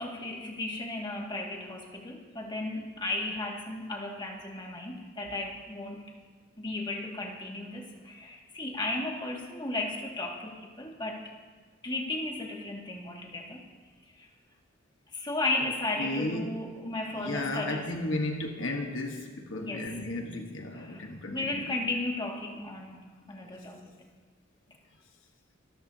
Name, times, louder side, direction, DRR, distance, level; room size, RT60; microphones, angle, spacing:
voice 1, 0.0-6.1 6.6-11.3 11.8-13.6 14.2-14.3 15.1-17.9 19.6-20.0 20.7-21.0 21.3-23.8, left 2 dB, 25° left, -1 dB, 2.1 m, -35 dB
voice 2, 16.0-16.5 17.1-21.8, left 2 dB, 80° left, 3 dB, 1.4 m, -34 dB
25.5 x 13.5 x 2.8 m, 1.4 s
head